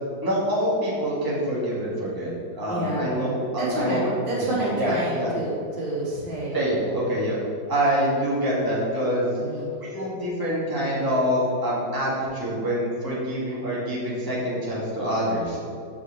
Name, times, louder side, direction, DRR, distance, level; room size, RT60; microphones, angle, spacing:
voice 1, 0.2-4.5 4.7-5.3 6.5-7.3 7.7-9.3 9.8-15.6, equal, 10° right, -7 dB, 2.2 m, -26 dB
voice 2, 2.7-4.0 4.3-7.0 9.4-9.7, right 2 dB, 70° right, -7 dB, 3.3 m, -29 dB
8.7 x 4.8 x 7.6 m, 2.4 s
omnidirectional pair, 2.0 m